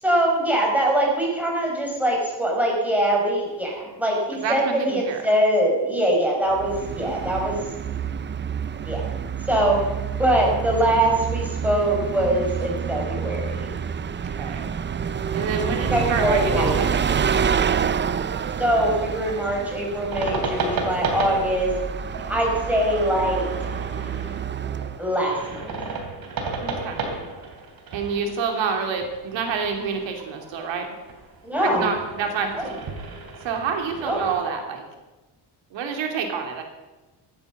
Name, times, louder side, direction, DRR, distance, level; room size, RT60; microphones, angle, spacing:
voice 1, 0.0-7.6 8.8-9.0 9.5-9.9 10.2-13.8 15.9-16.8 18.6-21.7 22.3-23.5 25.0-25.8 31.4-31.9 32.6-32.7 34.0-34.2, right 1 dB, 5° right, -2 dB, 5.2 m, -23 dB
voice 2, 4.4-5.2 14.4-14.6 15.3-17.3 26.6-27.0 27.9-30.9 31.6-32.8 33.4-34.8 35.7-36.6, right 5 dB, 85° right, 4 dB, 3.0 m, -28 dB
Bus, 6.5-25.1, right 7 dB, 25° right, 0.6 m, -28 dB
sound 1, 20.1-34.4, right 3 dB, 55° right, 3.0 m, -34 dB
15.0 x 9.6 x 7.4 m, 1.1 s
cardioid pair, 125°, 43 cm